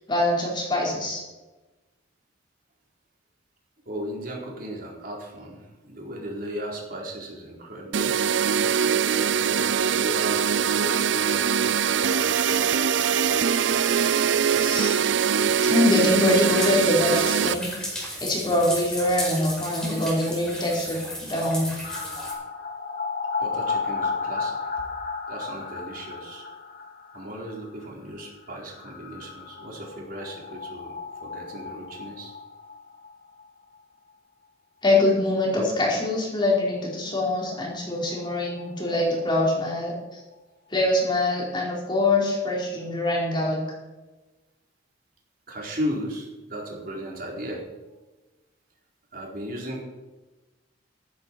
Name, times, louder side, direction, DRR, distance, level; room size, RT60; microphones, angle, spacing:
voice 1, 0.1-1.2 14.5-15.0 15.6-21.8 34.8-40.2 40.7-43.6, left 2 dB, 25° left, -3 dB, 4.7 m, -24 dB
voice 2, 3.9-8.1 9.5-11.7 12.0-12.6 14.0-14.1 14.4-14.6 23.4-24.8 25.3-26.4 27.1-32.3 45.5-47.7 49.1-49.8, equal, 50° right, -1 dB, 4.3 m, -36 dB
sound 1, 7.9-17.6, right 7 dB, 75° right, 0.5 m, -22 dB
sound 2, 16.1-22.3, equal, 5° left, 4.5 m, -34 dB
sound 3, 21.8-33.4 33.7-33.8 34.1-34.2 37.2-37.3 37.5-37.6 37.9-39.7 40.0-40.1, left 4 dB, 50° left, 2.8 m, -34 dB
14.5 x 13.0 x 4.8 m, 1.1 s
head